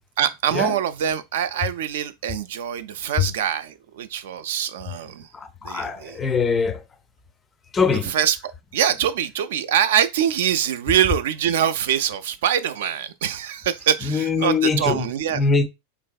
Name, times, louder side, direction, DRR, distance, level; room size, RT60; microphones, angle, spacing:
voice 1, 0.2-5.3 5.6-6.2 8.1-15.4, right 9 dB, 70° right, 0.3 m, -24 dB
voice 2, 5.3-6.8 7.7-8.1 14.1-15.1 15.3-15.7, left 5 dB, 20° left, 0.4 m, -22 dB
3.3 x 2.6 x 2.3 m
hypercardioid pair, 105°, 0 cm